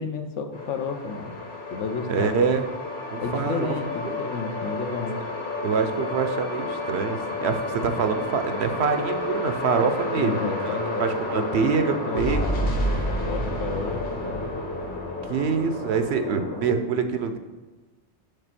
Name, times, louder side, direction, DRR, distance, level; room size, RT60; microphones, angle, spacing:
voice 1, 0.0-1.4 1.7-2.3 3.2-5.2 10.1-11.0 11.3-11.5 11.9-12.9 13.2-14.5, left 5 dB, 80° left, 6 dB, 1.0 m, -31 dB
sound 1, 0.5-16.7, left 1 dB, 45° left, 1.2 m, -30 dB
voice 2, 2.1-2.6 3.1-3.7 4.0-4.2 5.6-12.4 15.3-17.4, right 5 dB, 70° right, 7 dB, 0.9 m, -25 dB
6.8 x 3.5 x 5.8 m, 1.2 s
omnidirectional pair, 1.2 m